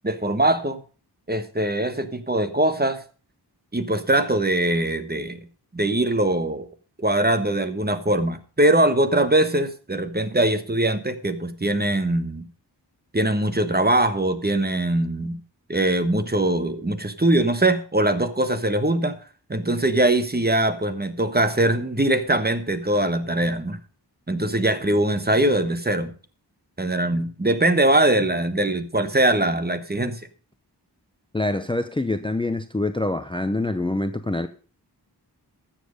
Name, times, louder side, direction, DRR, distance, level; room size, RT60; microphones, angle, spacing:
voice 1, 0.0-0.8 1.3-3.0 3.7-5.4 5.7-6.7 7.0-12.5 13.1-15.4 15.7-19.2 19.5-23.8 24.3-26.1 26.8-30.2, right 1 dB, 25° right, 1.2 m, -22 dB
voice 2, 31.3-34.5, left 2 dB, 10° left, 0.7 m, -25 dB
13.0 x 7.5 x 5.1 m
wide cardioid pair, 65°, 41 cm